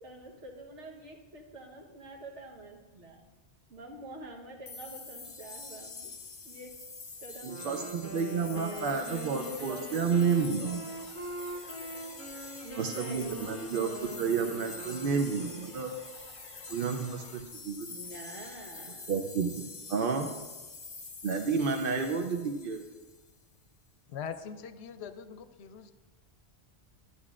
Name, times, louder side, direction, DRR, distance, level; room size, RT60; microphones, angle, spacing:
voice 1, 0.0-3.1 3.7-6.1 6.4-6.7 7.2-10.4 12.5-13.6 17.9-19.3, right 2 dB, 80° right, 0 dB, 1.5 m, -46 dB
sound 1, 4.7-23.3, left 4 dB, 40° left, 0.7 m, -46 dB
Wind instrument woodwind instrument, 7.4-15.8, right 1 dB, 10° right, 1.0 m, -43 dB
voice 2, 7.4-10.9 12.7-13.9 14.2-15.9 16.7-17.9 19.1-20.3 21.2-22.8, right 5 dB, 60° right, 4 dB, 0.7 m, -30 dB
sound 2, 8.8-17.4, left 2 dB, 40° right, 1.8 m, -53 dB
voice 3, 24.1-25.9, left 7 dB, 70° left, 10 dB, 0.8 m, -42 dB
11.5 x 9.7 x 2.4 m, 1.2 s
omnidirectional pair, 1.2 m